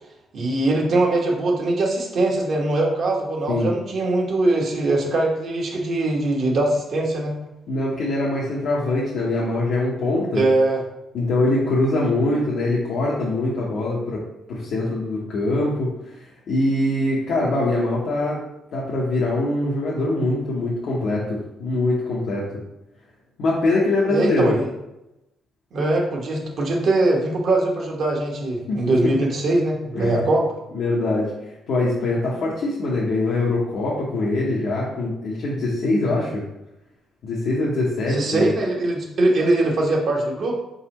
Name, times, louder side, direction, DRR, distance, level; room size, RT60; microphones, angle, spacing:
voice 1, 0.3-7.3 10.3-10.8 24.1-24.7 25.7-30.4 38.1-40.6, right 2 dB, 60° right, -1 dB, 1.1 m, -21 dB
voice 2, 7.7-10.4 11.1-14.2 14.5-18.4 18.7-22.4 23.4-24.5 28.7-28.8 29.9-30.3 30.7-36.4 37.2-38.5, left 2 dB, 70° left, -5 dB, 0.9 m, -23 dB
4.3 x 3.9 x 3.0 m, 0.91 s
cardioid pair, 90°, 0 cm